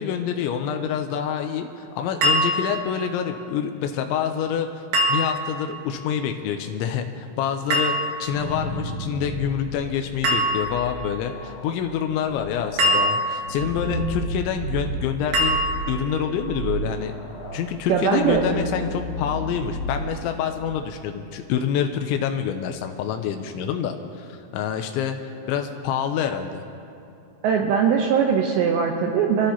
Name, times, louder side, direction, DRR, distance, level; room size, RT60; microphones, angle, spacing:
voice 1, 0.0-4.7 5.1-7.9 8.2-15.6 15.9-17.1 17.5-25.2 25.5-26.6, left 8 dB, 90° left, 5 dB, 2.7 m, -27 dB
sound 1, 2.2-2.9 4.9-5.6 7.7-8.4 10.2-10.9 12.8-13.7 15.3-16.1, equal, 55° right, 2.3 m, -23 dB
sound 2, 8.0-20.9, right 1 dB, 55° left, 1.4 m, -33 dB
voice 2, 17.9-18.4 27.4-29.5, right 7 dB, 75° right, 1 dB, 2.7 m, -20 dB
25.5 x 14.5 x 2.9 m, 2.7 s
omnidirectional pair, 6.0 m